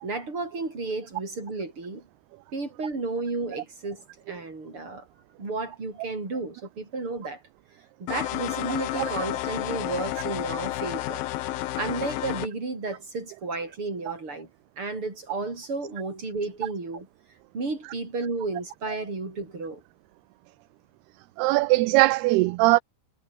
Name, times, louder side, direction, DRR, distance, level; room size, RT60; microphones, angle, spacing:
voice 1, 0.0-2.1 2.5-4.0 4.3-5.1 5.4-7.4 8.0-11.3 11.7-14.5 14.8-17.1 17.5-19.8, right 3 dB, 30° right, 7.4 m, -32 dB
sound 1, 8.1-12.5, left 15 dB, 70° left, 2.6 m, -31 dB
voice 2, 21.4-22.8, right 21 dB, 80° right, 2.5 m, -20 dB
omnidirectional pair, 4.8 m